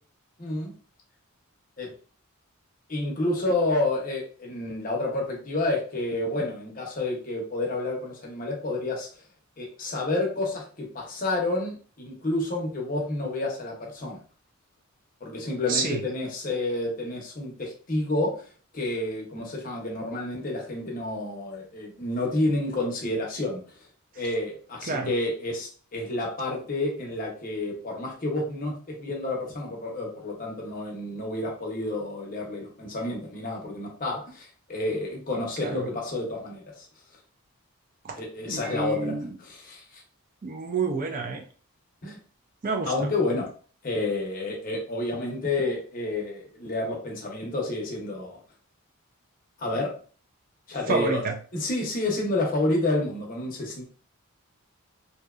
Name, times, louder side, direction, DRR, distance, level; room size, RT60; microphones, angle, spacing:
voice 1, 0.4-0.7 1.8-1.9 2.9-9.1 9.6-14.2 15.2-18.3 18.7-23.6 24.2-36.9 38.2-39.1 39.4-40.0 42.0-42.2 42.9-43.5 43.8-48.4 49.6-49.9 50.7-51.2 51.5-53.8, left 2 dB, 40° left, 0 dB, 0.6 m, -29 dB
voice 2, 15.7-16.0 24.9-25.1 35.6-35.9 38.1-38.2 38.5-39.3 40.4-41.4 42.6-42.9 50.9-51.3, right 3 dB, 40° right, 3 dB, 0.3 m, -28 dB
2.6 x 2.1 x 2.3 m, 0.41 s
head